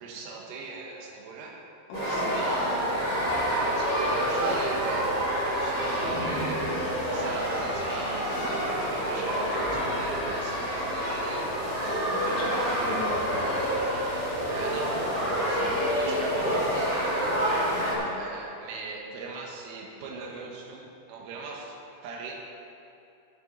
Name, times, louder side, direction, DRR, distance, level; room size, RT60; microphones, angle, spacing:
voice 1, 0.0-1.6 2.0-2.8 3.5-11.5 12.3-12.7 14.5-14.9 15.4-17.0 18.1-21.8 22.0-22.3, right 4 dB, 85° right, -1 dB, 3.9 m, -40 dB
voice 2, 1.9-2.7 12.1-13.5 15.6-15.7 17.7-18.1, left 2 dB, 80° left, -4 dB, 4.7 m, -38 dB
sound 1, 1.9-17.1, left 1 dB, 60° left, 1.1 m, -44 dB
sound 2, 1.9-17.9, equal, 25° right, 0.8 m, -28 dB
12.5 x 11.0 x 4.0 m, 2.7 s
omnidirectional pair, 5.6 m